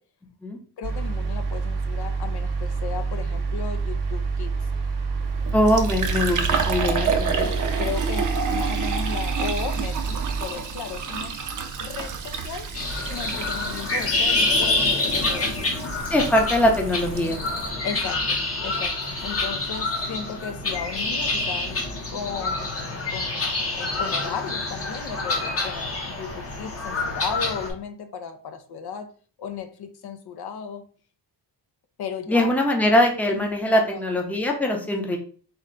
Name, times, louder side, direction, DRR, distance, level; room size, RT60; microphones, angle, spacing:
voice 1, 0.8-4.5 7.3-11.4 11.8-12.7 13.0-15.5 17.8-21.7 22.1-23.5 23.8-29.1 29.4-30.8 32.0-32.5 33.3-34.0, left 6 dB, 65° left, 8 dB, 0.5 m, -35 dB
sound 1, 0.8-10.4, right 4 dB, 75° right, 0.8 m, -27 dB
Fill (with liquid), 5.2-17.7, right 5 dB, 45° right, 0.6 m, -30 dB
voice 2, 5.5-7.5 16.1-17.4 32.3-35.2, left 1 dB, 5° left, 2 dB, 0.6 m, -22 dB
sound 2, 12.7-27.7, left 2 dB, 35° left, 0.8 m, -27 dB
4.4 x 2.2 x 3.7 m, 0.43 s
wide cardioid pair, 140°, 42 cm